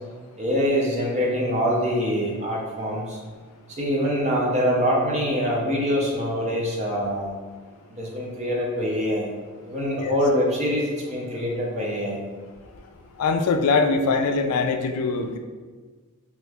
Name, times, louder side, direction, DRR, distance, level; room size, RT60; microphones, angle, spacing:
voice 1, 0.4-3.2 3.8-7.3 8.0-9.3 9.7-12.2, equal, 30° right, -2 dB, 0.6 m, -24 dB
voice 2, 13.2-15.4, left 4 dB, 80° left, 6 dB, 0.3 m, -22 dB
3.0 x 2.4 x 3.3 m, 1.4 s
head